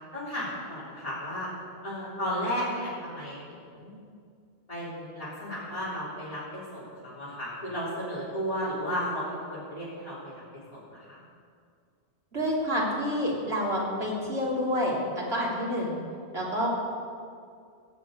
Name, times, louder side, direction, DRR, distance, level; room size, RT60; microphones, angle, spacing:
voice 1, 0.1-1.5 1.8-4.0 4.7-11.1, equal, 35° left, -10 dB, 3.4 m, -34 dB
voice 2, 12.3-16.0 16.3-16.7, equal, 90° right, -5 dB, 3.7 m, -28 dB
15.5 x 7.3 x 8.7 m, 2.3 s
omnidirectional pair, 1.0 m